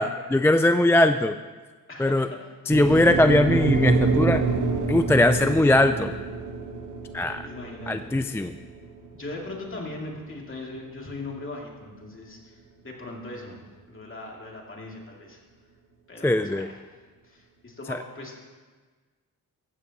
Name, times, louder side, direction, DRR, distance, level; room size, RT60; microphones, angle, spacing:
voice 1, 0.0-1.4 2.0-2.3 2.7-4.4 4.9-6.1 7.1-7.5 7.9-8.5 16.2-16.7 17.9-18.0, left 1 dB, 5° left, 9 dB, 0.4 m, -20 dB
voice 2, 1.9-2.3 2.9-3.1 5.3-5.6 7.4-8.1 9.1-13.6 13.9-15.4 16.1-16.6 17.2-18.4, left 2 dB, 35° left, -2 dB, 2.8 m, -39 dB
sound 1, 2.7-10.9, right 4 dB, 60° right, 1.6 m, -27 dB
15.0 x 14.5 x 3.1 m, 1.4 s
cardioid pair, 85°, 35 cm